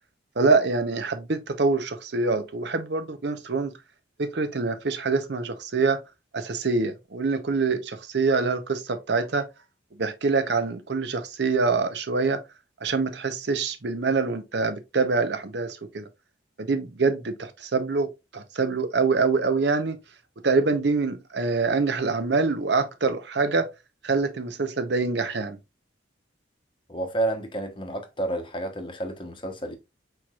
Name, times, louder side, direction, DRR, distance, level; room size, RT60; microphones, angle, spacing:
voice 1, 0.4-3.7 4.2-6.0 6.3-9.4 10.0-12.4 12.8-16.0 16.6-18.1 18.3-20.0 20.4-23.7 24.0-25.6, right 4 dB, 60° right, 0.7 m, -25 dB
voice 2, 26.9-29.8, right 2 dB, 25° left, 0.9 m, -30 dB
4.5 x 4.5 x 2.3 m
head